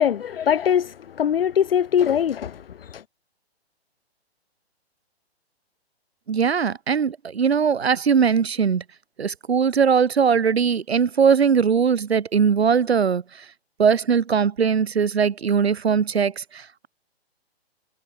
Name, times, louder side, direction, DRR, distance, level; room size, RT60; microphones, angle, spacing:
voice 1, 0.0-3.0, left 9 dB, 60° left, 2.0 m, -22 dB
voice 2, 6.3-8.8 9.2-13.4 13.8-16.9, right 6 dB, 75° right, 3.2 m, -20 dB
hypercardioid pair, 135°, 32 cm